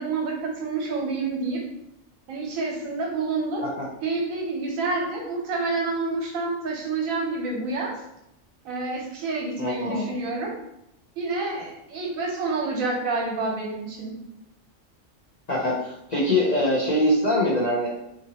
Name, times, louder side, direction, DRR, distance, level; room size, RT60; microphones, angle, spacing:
voice 1, 0.0-1.6 2.3-3.6 4.0-8.0 8.6-10.5 11.2-14.1, right 3 dB, 80° right, -1 dB, 1.2 m, -28 dB
voice 2, 9.6-10.1 15.5-17.9, left 1 dB, 45° left, -7 dB, 0.6 m, -23 dB
2.8 x 2.6 x 2.8 m, 0.82 s
omnidirectional pair, 1.4 m